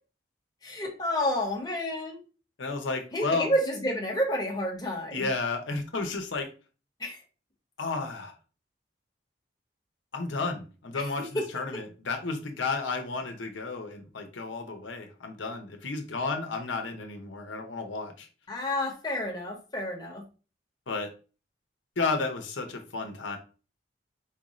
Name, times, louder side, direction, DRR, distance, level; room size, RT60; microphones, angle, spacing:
voice 1, 0.6-2.2 3.1-5.3 7.0-7.2 10.9-11.1 11.3-11.4 18.5-20.2, left 1 dB, 20° left, 0 dB, 0.9 m, -30 dB
voice 2, 2.6-3.5 5.1-6.5 7.8-8.3 10.1-18.3 20.9-21.1 22.0-23.4, left 3 dB, 80° left, 5 dB, 0.8 m, -32 dB
4.5 x 2.6 x 3.0 m, 0.34 s
head